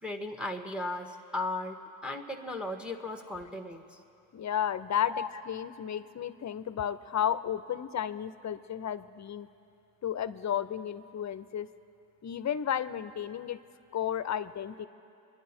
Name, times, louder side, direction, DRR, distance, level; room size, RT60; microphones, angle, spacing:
voice 1, 0.0-4.0 5.1-5.3, left 2 dB, ahead, 3 dB, 1.6 m, -36 dB
voice 2, 4.3-9.5 10.0-11.7 12.2-13.6 13.9-14.9, left 9 dB, 35° left, 14 dB, 0.8 m, -33 dB
26.5 x 10.5 x 4.5 m, 2.6 s
hypercardioid pair, 60°, 48 cm